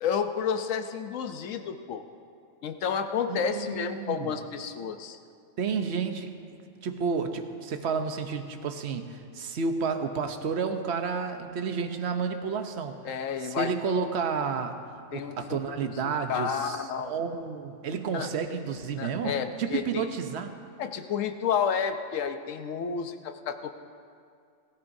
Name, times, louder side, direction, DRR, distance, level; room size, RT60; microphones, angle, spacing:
voice 1, 0.0-2.0 2.6-5.2 13.0-13.7 15.1-16.0 16.3-17.1 18.1-18.3 19.0-20.1 20.8-23.7, left 7 dB, 80° left, 7 dB, 1.1 m, -31 dB
voice 2, 3.3-4.3 5.6-13.0 13.4-14.8 15.1-20.6, right 5 dB, 60° right, 6 dB, 1.1 m, -31 dB
20.0 x 14.5 x 2.7 m, 2.3 s
omnidirectional pair, 1.3 m